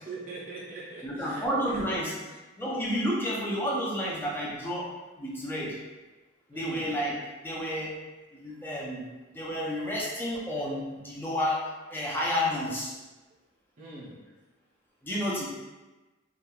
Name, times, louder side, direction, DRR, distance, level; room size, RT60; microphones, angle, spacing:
voice 1, 0.0-1.4 6.5-6.9 13.8-14.1, right 3 dB, 40° right, -8 dB, 0.6 m, -41 dB
voice 2, 1.0-2.2 2.6-4.9 5.2-5.8 6.5-8.0 8.4-9.0 9.3-11.6 11.9-12.9 15.0-15.5, equal, 10° left, -5 dB, 0.5 m, -30 dB
3.0 x 2.3 x 2.2 m, 1.1 s
head